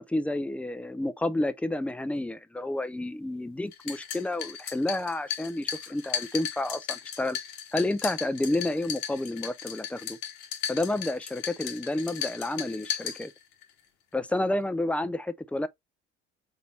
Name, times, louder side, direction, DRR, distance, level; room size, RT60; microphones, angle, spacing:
voice 1, 0.0-7.4 7.7-10.2 10.7-13.3 14.1-15.7, left 1 dB, 5° left, 0.4 m, -30 dB
sound 1, 3.7-13.7, left 9 dB, 70° left, 0.9 m, -36 dB
3.9 x 2.9 x 4.2 m
figure-of-eight pair, 60°, 34 cm